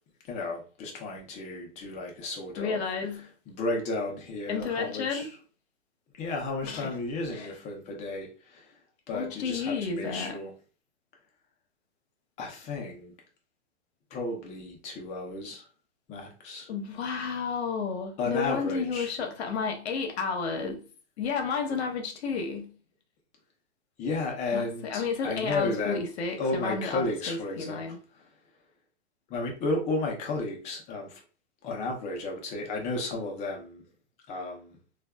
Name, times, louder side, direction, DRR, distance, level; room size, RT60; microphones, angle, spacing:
voice 1, 0.3-2.8 3.1-5.3 6.2-8.7 9.1-10.5 12.4-13.1 14.1-15.7 16.1-16.7 18.2-19.1 24.0-26.0 26.4-28.3 29.3-31.2 31.6-33.8 34.3-34.8, left 2 dB, 20° left, 0.6 m, -33 dB
voice 2, 2.6-3.3 4.5-5.2 6.6-6.9 7.3-7.5 9.1-10.4 16.7-20.8 21.2-22.8 24.5-28.0, left 5 dB, 60° left, 0.9 m, -31 dB
3.2 x 2.4 x 2.2 m
hypercardioid pair, 135°, 36 cm